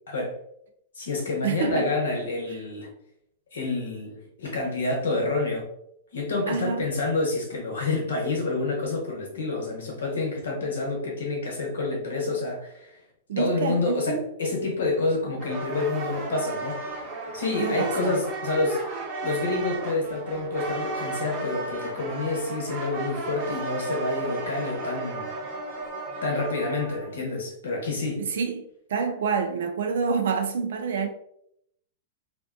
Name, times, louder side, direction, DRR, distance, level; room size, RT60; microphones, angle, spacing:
voice 1, 0.1-0.4 1.0-2.9 3.5-5.6 6.1-13.0 13.4-16.8 17.3-25.3 26.2-28.2, left 3 dB, 80° left, 0.9 m, -28 dB
voice 2, 1.4-1.9 2.5-2.6 6.5-6.8 13.3-14.3 17.6-18.2 28.0-28.6 28.9-31.1, right 5 dB, 70° right, 0.4 m, -27 dB
sound 1, 15.4-27.1, right 3 dB, 40° right, 1.0 m, -34 dB
2.5 x 2.2 x 2.4 m
hypercardioid pair, 110°, 0 cm